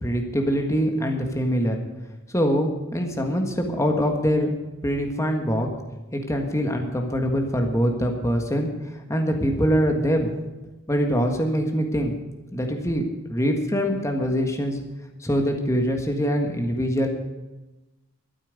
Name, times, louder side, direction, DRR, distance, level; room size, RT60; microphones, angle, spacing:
voice 1, 0.0-1.8 2.3-4.5 4.8-5.7 6.1-8.7 9.1-10.3 10.9-12.2 12.5-13.0 13.3-14.8 15.2-17.1, equal, 15° left, 3 dB, 1.6 m, -23 dB
13.0 x 8.9 x 8.3 m, 1.1 s
head